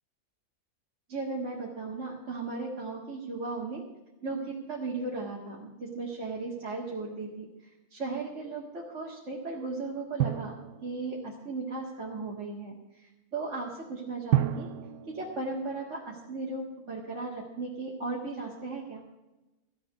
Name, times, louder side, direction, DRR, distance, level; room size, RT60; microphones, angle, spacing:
voice 1, 1.1-3.8 4.2-14.7 15.1-19.0, right 3 dB, 50° right, -4 dB, 2.3 m, -36 dB
Drum, 10.2-11.7 14.3-16.5, right 12 dB, 75° right, 1.1 m, -32 dB
14.0 x 7.7 x 8.3 m, 1.1 s
omnidirectional pair, 1.7 m